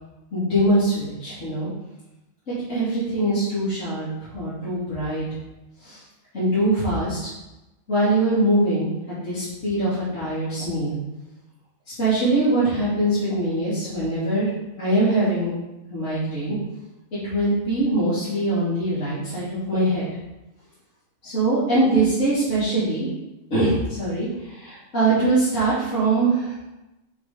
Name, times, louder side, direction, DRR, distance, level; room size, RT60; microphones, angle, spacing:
voice 1, 0.3-1.7 2.7-5.3 5.8-6.0 6.3-7.3 7.9-11.0 12.0-14.5 14.8-15.5 15.9-16.6 17.2-20.0 21.2-23.1 23.5-26.6, right 2 dB, 55° left, -13 dB, 3.3 m, -22 dB
7.1 x 5.0 x 5.2 m, 0.97 s
omnidirectional pair, 1.5 m